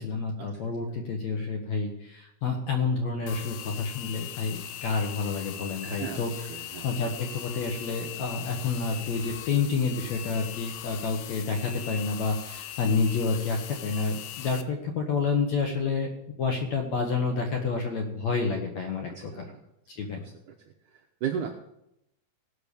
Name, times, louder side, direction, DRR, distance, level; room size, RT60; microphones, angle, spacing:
voice 1, 0.0-6.3 6.8-16.1 16.4-19.3 19.9-20.2, left 4 dB, 60° left, 3 dB, 2.0 m, -29 dB
sound 1, 3.3-14.6, left 11 dB, 90° left, 1.8 m, -40 dB
voice 2, 5.8-6.9 19.1-19.6 20.2-20.5 20.9-21.5, right 8 dB, 75° right, 2 dB, 1.8 m, -36 dB
18.0 x 5.9 x 6.9 m, 0.82 s
omnidirectional pair, 4.6 m